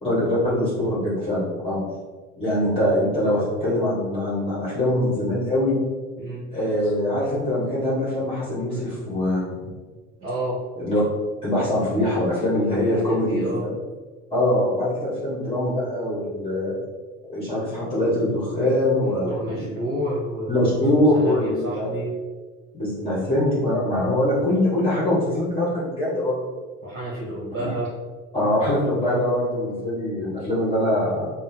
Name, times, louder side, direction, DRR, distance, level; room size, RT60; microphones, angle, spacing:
voice 1, 0.0-1.8 2.4-5.7 6.5-9.5 10.7-11.0 11.4-13.7 14.3-16.7 17.3-19.6 20.5-21.9 22.7-26.4 27.6-27.7 28.3-31.3, left 1 dB, 15° left, -9 dB, 1.3 m, -23 dB
voice 2, 10.2-10.6 12.7-13.6 19.2-20.8 21.1-22.1 26.8-27.9, right 1 dB, 30° right, -8 dB, 1.2 m, -30 dB
3.5 x 2.0 x 4.3 m, 1.3 s
figure-of-eight pair, 65°, 41 cm